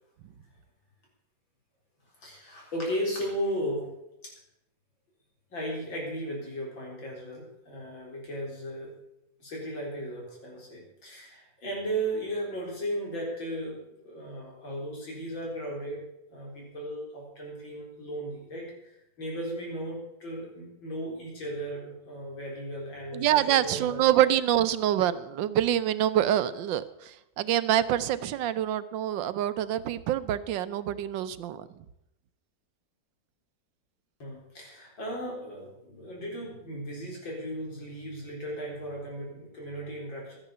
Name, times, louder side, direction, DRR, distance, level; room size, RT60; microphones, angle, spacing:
voice 1, 2.2-3.9 4.2-4.3 5.5-8.9 9.4-16.0 16.3-24.0 34.2-40.4, right 1 dB, 85° left, -2 dB, 4.9 m, -36 dB
voice 2, 23.1-31.7, right 11 dB, 75° right, 14 dB, 1.4 m, -26 dB
13.0 x 10.0 x 6.8 m, 0.85 s
omnidirectional pair, 2.1 m